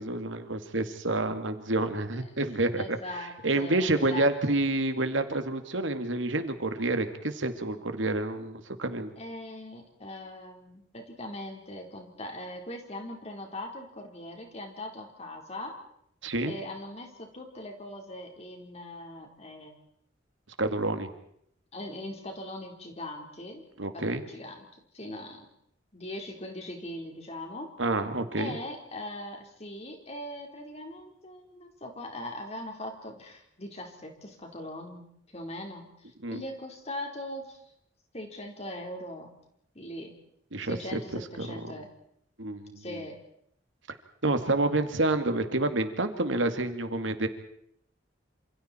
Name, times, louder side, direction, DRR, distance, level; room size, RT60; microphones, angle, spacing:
voice 1, 0.0-3.0 3.4-9.1 16.2-16.5 20.6-21.1 23.8-24.2 27.8-28.6 36.2-36.4 40.5-41.0 41.4-41.7 42.4-43.0 44.2-47.3, right 2 dB, 75° right, 8 dB, 2.3 m, -28 dB
voice 2, 2.8-4.6 9.2-15.8 16.4-19.8 21.7-23.6 23.9-24.7 24.9-25.5 25.9-27.7 28.4-37.6 38.1-39.3 39.7-40.1 40.6-41.9 42.8-43.2, left 1 dB, 35° left, 3 dB, 4.2 m, -40 dB
28.0 x 27.5 x 4.5 m, 0.71 s
head